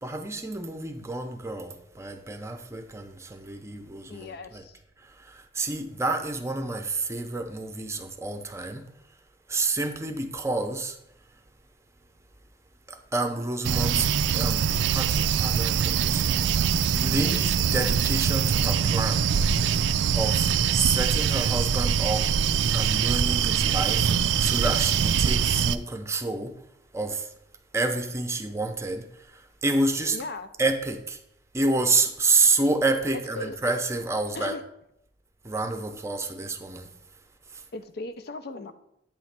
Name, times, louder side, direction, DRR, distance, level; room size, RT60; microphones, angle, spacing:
voice 1, 0.0-4.6 5.2-8.9 9.5-11.0 12.9-16.2 16.9-19.3 20.1-22.3 22.7-24.1 24.4-26.5 26.9-27.3 27.7-30.2 30.6-31.2 31.5-34.5 35.4-36.9 37.5-37.6, right 3 dB, 15° right, 6 dB, 0.6 m, -29 dB
voice 2, 4.1-4.8 17.2-17.4 30.1-30.5 33.1-33.6 34.3-34.6 37.7-38.7, left 2 dB, 60° left, 10 dB, 0.6 m, -37 dB
sound 1, 13.6-25.8, right 7 dB, 75° right, 0.3 m, -23 dB
8.8 x 3.1 x 5.8 m, 0.80 s
head